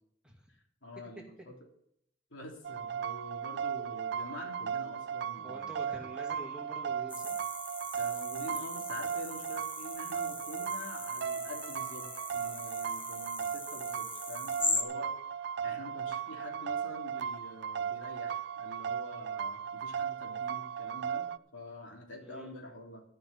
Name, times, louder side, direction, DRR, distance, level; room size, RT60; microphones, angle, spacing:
voice 1, 0.8-1.6 2.3-6.1 7.9-12.1 12.3-15.1 15.6-23.0, left 1 dB, 85° left, 1 dB, 3.2 m, -46 dB
sound 1, 2.6-21.4, right 8 dB, 60° right, 0.4 m, -36 dB
voice 2, 5.4-7.4 22.2-22.5, right 2 dB, 5° right, -1 dB, 2.4 m, -46 dB
sound 2, 7.1-14.8, left 3 dB, 10° left, 0.9 m, -39 dB
13.5 x 5.9 x 8.6 m, 0.73 s
head